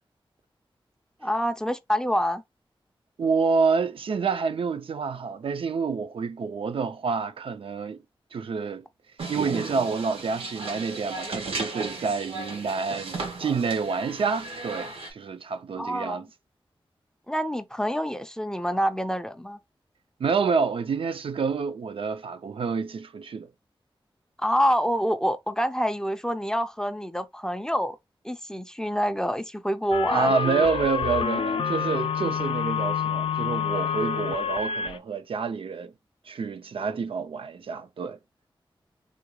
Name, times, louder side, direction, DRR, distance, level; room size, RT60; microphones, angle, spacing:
voice 1, 1.2-2.4 15.8-16.2 17.3-19.6 24.4-28.0 28.2-30.3, equal, 5° left, 0.3 m, -26 dB
voice 2, 3.2-8.0 8.3-8.8 9.3-16.3 20.2-23.5 30.1-35.9 36.3-38.2, right 5 dB, 70° right, 0.4 m, -28 dB
sound 1, 9.2-15.1, right 3 dB, 90° right, 0.8 m, -35 dB
sound 2, 29.9-35.0, left 7 dB, 75° left, 0.4 m, -27 dB
3.7 x 2.2 x 3.0 m
wide cardioid pair, 110°, 9 cm